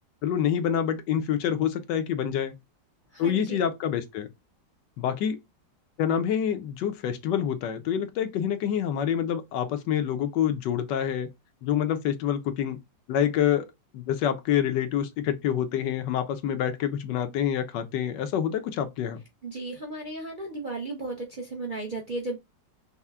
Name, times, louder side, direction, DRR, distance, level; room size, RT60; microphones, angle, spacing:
voice 1, 0.2-2.5 3.2-4.3 5.0-5.4 6.0-11.3 11.6-12.8 13.1-13.7 13.9-19.2, left 9 dB, 75° left, 1.2 m, -27 dB
voice 2, 3.1-3.6 19.4-22.4, right 2 dB, 40° right, 0.7 m, -35 dB
5.5 x 2.1 x 3.5 m
omnidirectional pair, 2.0 m